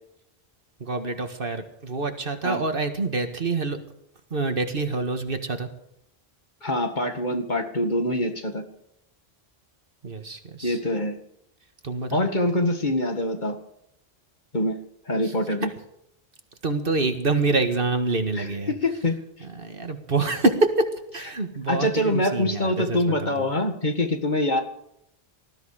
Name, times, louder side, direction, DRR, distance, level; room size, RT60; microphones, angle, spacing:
voice 1, 0.8-3.8 4.3-5.7 10.0-10.8 11.8-12.2 15.2-15.3 16.6-18.7 19.4-23.5, right 3 dB, 60° right, 7 dB, 1.9 m, -26 dB
voice 2, 6.6-8.6 10.6-11.2 12.1-13.6 14.5-14.8 15.1-15.7 18.4-19.2 21.7-24.6, left 1 dB, 50° left, 5 dB, 2.1 m, -24 dB
19.5 x 13.5 x 5.0 m, 0.76 s
omnidirectional pair, 1.0 m